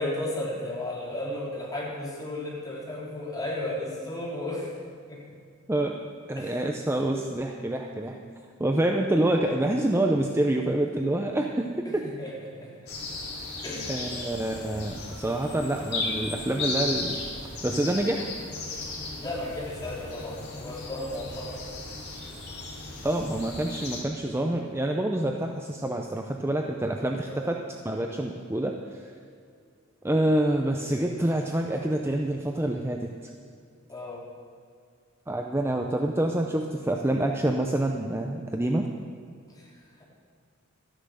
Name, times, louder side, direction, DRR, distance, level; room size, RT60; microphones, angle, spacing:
voice 1, 0.0-4.7 5.1-5.2 6.4-6.6 11.9-12.7 13.6-14.3 19.2-21.6 27.3-27.4 33.9-34.2 39.5-40.0, left 1 dB, 20° left, -6 dB, 3.6 m, -34 dB
voice 2, 6.3-8.2 8.6-12.1 13.9-17.2 17.6-18.3 23.0-27.6 27.8-29.1 30.0-33.1 35.3-38.9, right 1 dB, 10° right, 2 dB, 0.5 m, -27 dB
sound 1, 12.9-24.0, left 3 dB, 50° left, 3.1 m, -35 dB
13.0 x 10.0 x 6.4 m, 2.2 s
head